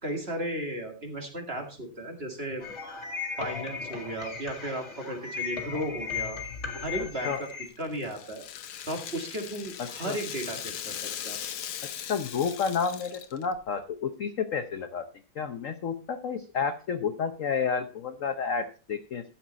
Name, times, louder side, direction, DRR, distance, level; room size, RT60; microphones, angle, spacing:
voice 1, 0.0-2.6 3.4-6.4 6.8-7.3 7.8-8.4 8.9-11.4, right 1 dB, 30° right, 3 dB, 2.1 m, -35 dB
sound 1, 2.6-7.7, left 5 dB, 35° left, 2.4 m, -36 dB
voice 2, 7.0-7.4 9.8-10.2 12.0-15.1 15.4-19.2, left 6 dB, 60° left, 8 dB, 0.9 m, -31 dB
Rattle (instrument), 7.4-13.6, left 10 dB, 85° left, 1.7 m, -39 dB
12.5 x 7.7 x 4.0 m, 0.35 s
omnidirectional pair, 2.2 m